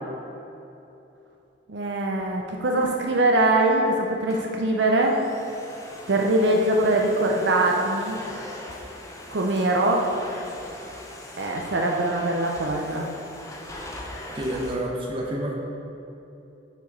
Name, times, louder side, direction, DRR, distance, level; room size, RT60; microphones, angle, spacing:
voice 1, 1.7-5.2 6.1-8.2 9.3-10.1 11.4-13.1, right 2 dB, 65° right, 1 dB, 0.6 m, -22 dB
Domestic sounds home sounds, 4.1-14.7, left 1 dB, 15° left, 0.6 m, -41 dB
voice 2, 14.3-15.5, right 1 dB, 30° right, -2 dB, 0.9 m, -28 dB
6.8 x 4.9 x 5.3 m, 2.9 s
head